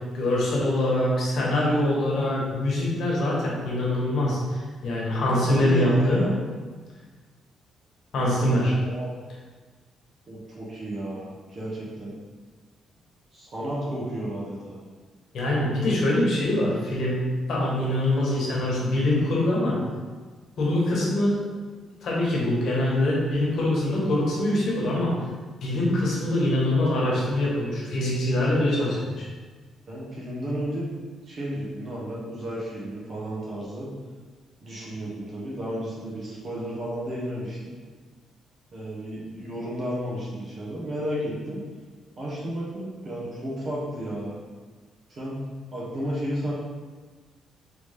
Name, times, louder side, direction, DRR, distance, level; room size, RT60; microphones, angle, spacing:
voice 1, 0.1-4.4 4.8-6.2 8.1-8.7 15.3-17.2 17.5-19.8 20.6-21.4 22.0-25.1 25.6-29.3, left 1 dB, 65° left, -4 dB, 1.3 m, -24 dB
voice 2, 5.5-6.3 8.7-9.1 10.3-12.2 13.3-14.8 29.9-30.9 31.3-33.9 34.6-37.8 38.7-41.6 42.2-44.4 45.1-45.4 45.7-46.5, right 1 dB, 45° right, -6 dB, 1.5 m, -33 dB
3.8 x 3.4 x 3.5 m, 1.4 s
cardioid pair, 90°, 0 cm